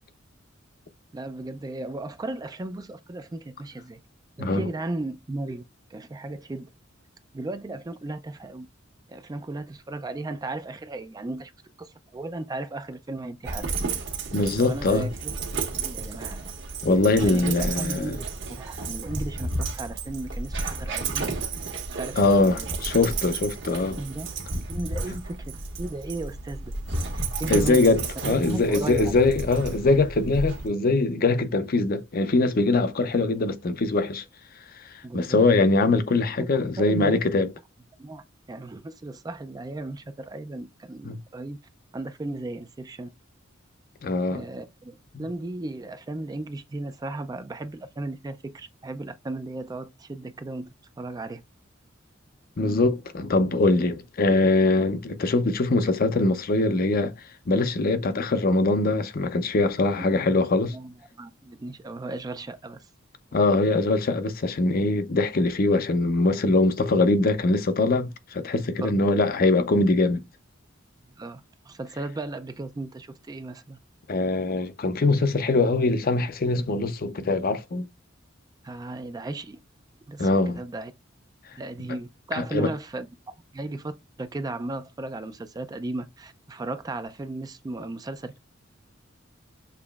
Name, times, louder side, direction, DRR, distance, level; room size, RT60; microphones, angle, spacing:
voice 1, 1.1-4.0 4.4-5.6 5.9-6.7 7.3-8.7 9.1-11.5 11.8-13.7 14.6-16.5 17.2-21.3 21.9-22.7 24.0-24.3 24.7-25.4 25.8-26.7 27.1-27.9 28.2-29.2 35.0-35.4 36.4-37.2 38.0-41.6 41.9-43.1 44.3-50.7 51.0-51.4 60.0-60.2 60.7-62.9 68.8-68.9 71.2-73.8 78.6-79.6 80.1-80.9 81.6-88.4, right 2 dB, 20° right, 0.3 m, -35 dB
Dog, 13.5-30.7, right 3 dB, 65° right, 1.3 m, -32 dB
voice 2, 14.3-15.1 16.8-18.2 22.2-24.0 27.5-34.2 35.1-37.5 41.0-41.2 44.0-44.5 45.1-45.2 52.6-57.1 57.5-60.8 63.3-70.2 74.1-77.9 80.2-80.6 82.3-82.7, left 2 dB, 50° left, 0.6 m, -22 dB
6.7 x 3.0 x 2.3 m
head